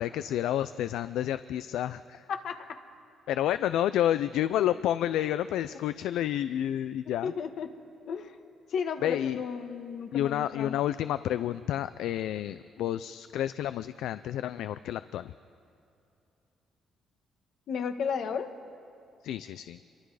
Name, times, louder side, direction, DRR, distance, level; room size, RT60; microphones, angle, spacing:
voice 1, 0.0-2.2 3.3-7.3 9.0-9.4 10.1-15.3 19.2-19.8, left 11 dB, 85° left, 13 dB, 0.4 m, -30 dB
voice 2, 2.3-2.8 7.2-7.7 8.1-8.4 8.7-10.8 17.7-18.5, left 6 dB, 70° left, 7 dB, 1.4 m, -33 dB
26.0 x 23.0 x 4.9 m, 2.6 s
cardioid pair, 90°, 0 cm